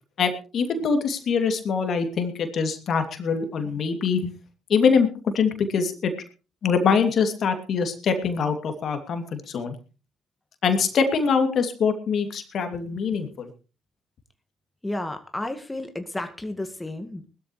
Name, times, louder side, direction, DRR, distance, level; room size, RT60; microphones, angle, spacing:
voice 1, 0.2-4.3 4.7-6.1 6.6-9.7 10.6-13.5, left 5 dB, 55° left, 7 dB, 2.8 m, -24 dB
voice 2, 14.8-17.3, left 1 dB, 15° left, 7 dB, 2.0 m, -32 dB
20.5 x 13.0 x 3.3 m, 0.33 s
hypercardioid pair, 50°, 0 cm